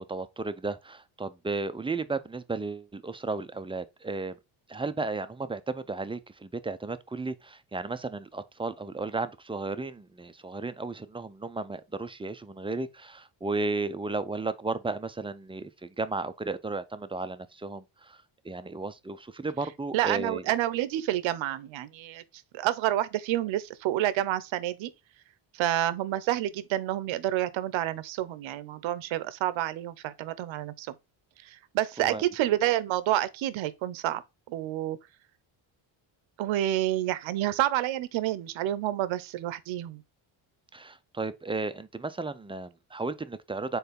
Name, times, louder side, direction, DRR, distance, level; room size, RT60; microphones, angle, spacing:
voice 1, 0.0-4.4 4.7-20.4 32.0-32.2 40.7-43.8, right 3 dB, 10° right, 0.5 m, -34 dB
voice 2, 19.9-22.2 22.5-24.9 25.6-30.9 31.4-34.2 34.5-35.0 36.4-40.0, right 13 dB, 80° right, 0.8 m, -29 dB
4.6 x 4.0 x 5.2 m
cardioid pair, 95°, 46 cm